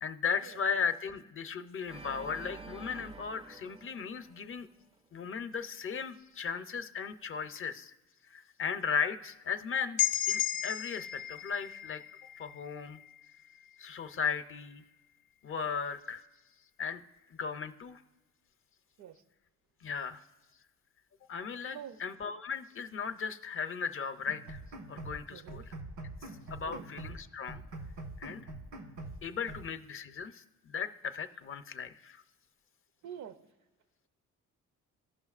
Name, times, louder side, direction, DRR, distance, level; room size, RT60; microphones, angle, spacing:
voice 1, 0.0-4.7 5.1-7.9 8.2-12.0 12.4-13.0 13.8-14.8 15.4-16.2 16.8-17.0 17.3-18.0 19.8-20.2 21.3-24.6 24.9-25.7 26.2-27.6 28.2-28.5 29.2-32.2, left 6 dB, 45° left, 10 dB, 0.6 m, -36 dB
Organ, 1.9-5.0, right 3 dB, 20° right, 0.4 m, -49 dB
sound 1, 10.0-13.8, left 11 dB, 85° left, 0.5 m, -34 dB
sound 2, 24.3-25.2 25.5-27.2 27.5-29.2 29.5-29.7, right 2 dB, 90° right, 1.5 m, -44 dB
voice 2, 25.3-25.6 26.6-26.8 33.0-33.4, right 9 dB, 70° right, 11 dB, 0.6 m, -46 dB
15.0 x 5.8 x 2.4 m, 1.2 s
cardioid pair, 90°, 30 cm